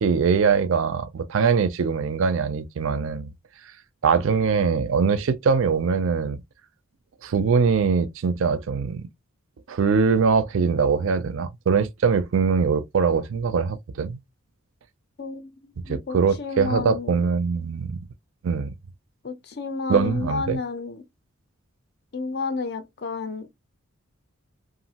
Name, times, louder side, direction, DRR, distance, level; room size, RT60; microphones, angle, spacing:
voice 1, 0.0-3.3 4.0-6.4 7.2-9.0 9.7-14.2 15.9-18.0 18.4-18.7 19.9-20.6, right 5 dB, 60° right, 0.4 m, -22 dB
voice 2, 15.2-17.2 19.2-21.0 22.1-23.5, left 4 dB, 50° left, 0.5 m, -31 dB
2.9 x 2.4 x 2.7 m
head